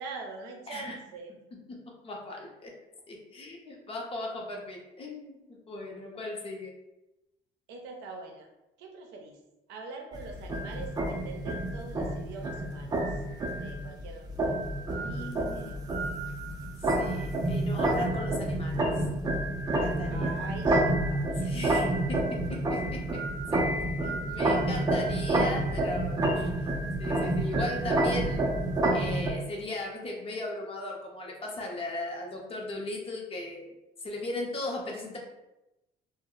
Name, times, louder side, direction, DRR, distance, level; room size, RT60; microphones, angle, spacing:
voice 1, 0.0-1.3 7.7-8.5 8.8-9.4 9.7-13.2 13.6-14.3 15.0-15.9 20.1-21.7, right 4 dB, 85° right, 2 dB, 0.5 m, -44 dB
voice 2, 2.0-2.7 3.1-6.7 14.9-15.8 16.8-19.0 19.8-20.3 21.4-22.2 22.5-23.0 23.5-23.6 24.0-26.7 27.0-28.4 28.9-33.7 34.0-35.2, left 2 dB, 35° left, -1 dB, 0.6 m, -38 dB
sound 1, 10.1-29.3, right 1 dB, 25° right, 0.4 m, -29 dB
2.0 x 2.0 x 3.7 m, 0.97 s
cardioid pair, 110°, 17 cm